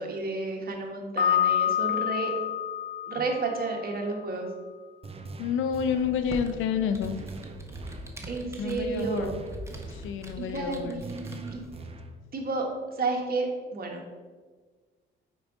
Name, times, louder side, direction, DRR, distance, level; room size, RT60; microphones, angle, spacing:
voice 1, 0.0-2.3 3.1-4.5 8.3-9.3 10.4-11.6 12.3-12.6 12.9-14.0, right 3 dB, 50° right, 1 dB, 1.3 m, -31 dB
Piano, 1.2-4.1, left 10 dB, 35° left, 1.4 m, -27 dB
sound 1, 5.0-6.2 7.0-8.2 9.0-10.2 11.0-12.2, right 3 dB, 30° right, 0.5 m, -42 dB
voice 2, 5.4-7.1 8.6-9.4 9.9-11.0, left 7 dB, 85° left, 10 dB, 0.5 m, -29 dB
Computer keyboard, 6.0-11.8, equal, 15° right, 0.9 m, -43 dB
4.7 x 4.4 x 5.1 m, 1.4 s
cardioid pair, 90°, 20 cm